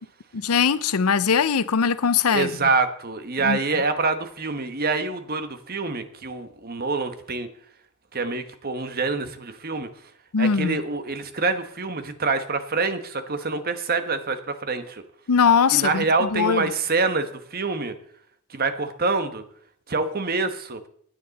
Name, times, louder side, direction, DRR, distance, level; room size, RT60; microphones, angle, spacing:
voice 1, 0.3-2.5 3.4-3.6 10.3-10.8 15.3-16.6, left 6 dB, 80° left, 0.6 m, -21 dB
voice 2, 2.3-7.5 8.1-10.1 10.4-15.0 15.7-17.9 18.5-19.4 19.9-20.8, right 3 dB, 40° right, 1.2 m, -26 dB
16.5 x 9.6 x 4.1 m
head